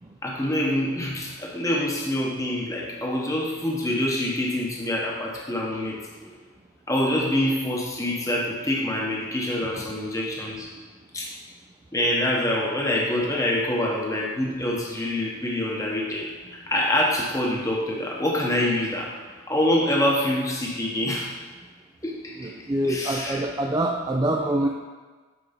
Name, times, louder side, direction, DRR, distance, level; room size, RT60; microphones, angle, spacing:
voice 1, 0.2-6.3 6.9-10.7 11.1-11.3 11.9-16.3 16.7-19.1 19.5-21.3 22.0-22.5 22.8-23.4, left 1 dB, 15° left, -2 dB, 0.9 m, -26 dB
voice 2, 22.4-24.7, right 1 dB, 20° right, 0 dB, 0.4 m, -25 dB
7.9 x 4.6 x 5.1 m, 1.4 s
head